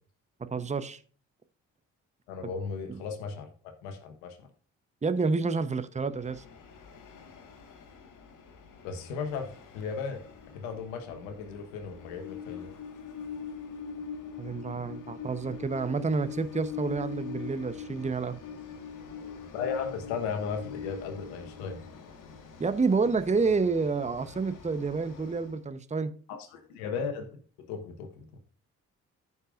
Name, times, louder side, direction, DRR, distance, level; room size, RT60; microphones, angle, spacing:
voice 1, 0.5-1.0 2.9-3.0 5.0-6.4 14.4-18.4 22.6-26.1, right 4 dB, 20° right, 12 dB, 0.9 m, -29 dB
voice 2, 2.3-4.5 8.8-10.2 10.5-12.7 19.5-21.8 26.3-27.3 27.7-28.3, left 5 dB, 90° left, 6 dB, 1.3 m, -36 dB
Train, 6.1-25.6, left 7 dB, 65° left, 1.7 m, -43 dB
14.5 x 5.5 x 2.5 m, 0.42 s
hypercardioid pair, 50°, 34 cm